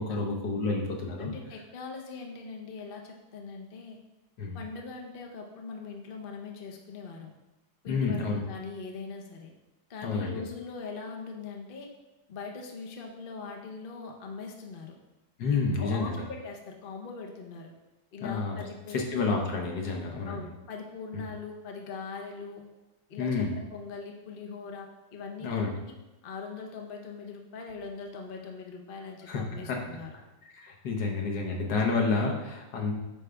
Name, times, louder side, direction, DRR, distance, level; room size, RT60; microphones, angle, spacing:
voice 1, 0.0-1.3 4.4-4.6 7.9-8.4 10.0-10.4 15.4-16.2 18.2-18.6 18.9-20.4 23.2-23.5 25.4-25.7 29.3-29.8 30.5-32.9, left 4 dB, 65° left, 1 dB, 1.6 m, -29 dB
voice 2, 1.2-4.0 4.5-7.3 7.8-9.5 9.9-11.9 12.3-14.9 15.5-17.7 18.1-19.0 20.3-22.6 23.1-25.7 26.2-30.1, left 4 dB, 45° left, 1 dB, 0.7 m, -41 dB
9.1 x 4.9 x 3.4 m, 1.0 s
omnidirectional pair, 2.1 m